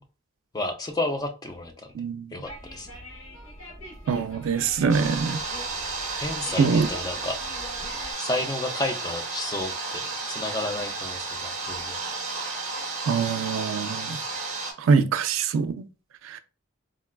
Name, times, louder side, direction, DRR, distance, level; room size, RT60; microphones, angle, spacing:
voice 1, 0.5-1.7 2.3-2.9 6.2-7.4 8.2-12.0, left 2 dB, 20° left, 0.4 m, -31 dB
voice 2, 1.9-2.4 4.1-5.4 6.0-6.2 6.6-6.9 13.1-14.2 14.8-15.9 16.2-16.4, right 5 dB, 75° right, 0.3 m, -24 dB
sound 1, 2.4-8.1, equal, 65° left, 1.2 m, -43 dB
sound 2, 4.9-14.7, right 3 dB, 35° right, 0.8 m, -33 dB
3.8 x 2.2 x 2.2 m
head